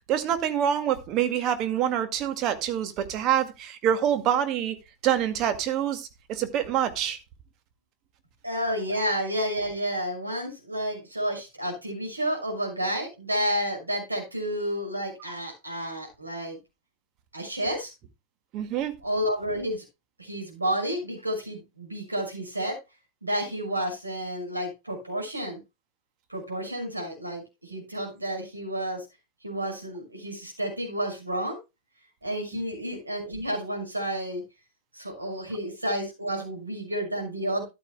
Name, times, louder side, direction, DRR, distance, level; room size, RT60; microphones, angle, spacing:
voice 1, 0.1-4.8 5.0-7.2 18.5-18.9, right 10 dB, 35° right, 2.0 m, -26 dB
voice 2, 8.4-16.6 17.3-17.9 19.0-19.8 20.2-22.8 23.2-25.6 26.3-29.0 29.4-31.6 32.2-34.4 34.9-37.6, equal, 80° right, 6.2 m, -30 dB
14.0 x 11.5 x 2.3 m
figure-of-eight pair, 90°, 0 cm